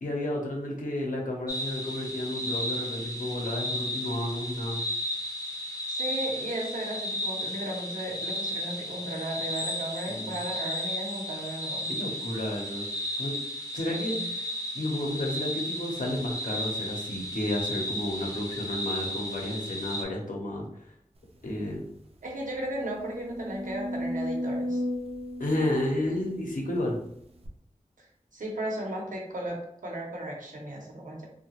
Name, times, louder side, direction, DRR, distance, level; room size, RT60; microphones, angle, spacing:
voice 1, 0.0-4.8 10.1-10.3 11.9-12.8 13.2-13.4 13.7-14.5 14.7-20.6 21.4-21.8 25.4-27.0, left 1 dB, 85° left, -1 dB, 0.7 m, -31 dB
sound 1, 1.5-20.0, equal, 25° left, 0.5 m, -34 dB
voice 2, 5.9-11.9 13.9-14.3 22.2-24.8 28.0-31.3, right 1 dB, 85° right, -2 dB, 0.8 m, -35 dB
sound 2, 21.4-21.5 21.9-22.0 22.5-26.8 27.4-27.5, left 1 dB, 50° right, 0.5 m, -34 dB
2.8 x 2.2 x 2.9 m, 0.73 s
wide cardioid pair, 75°, 13 cm